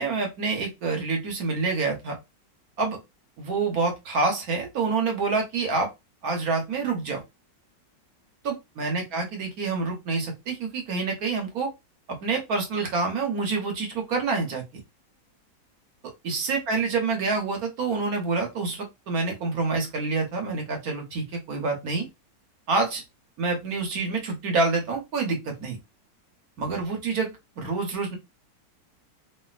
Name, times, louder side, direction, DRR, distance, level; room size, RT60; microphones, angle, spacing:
voice 1, 0.0-2.2 2.8-3.0 3.4-5.9 6.2-7.2 8.4-11.7 12.1-14.6 16.2-22.1 22.7-23.0 23.4-25.8 26.6-28.2, right 4 dB, 60° right, 2 dB, 1.3 m, -27 dB
3.2 x 2.5 x 2.4 m, 0.22 s
omnidirectional pair, 1.9 m